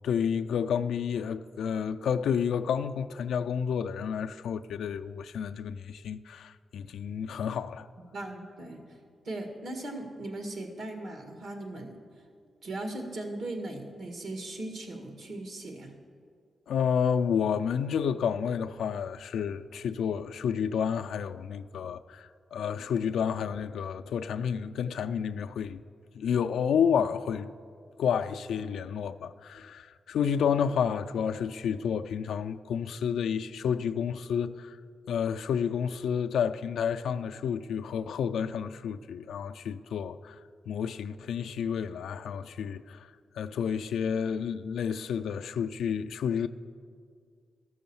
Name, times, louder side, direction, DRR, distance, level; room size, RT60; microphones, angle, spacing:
voice 1, 0.0-7.9 16.7-25.8 26.1-27.5 28.0-34.8 35.1-40.4 40.7-43.1 43.4-46.5, left 7 dB, 90° left, 0.3 m, -30 dB
voice 2, 8.1-9.0 9.2-11.9 12.6-15.9, right 2 dB, 75° right, 1.7 m, -38 dB
13.0 x 6.3 x 7.0 m
cardioid pair, 70°, 0 cm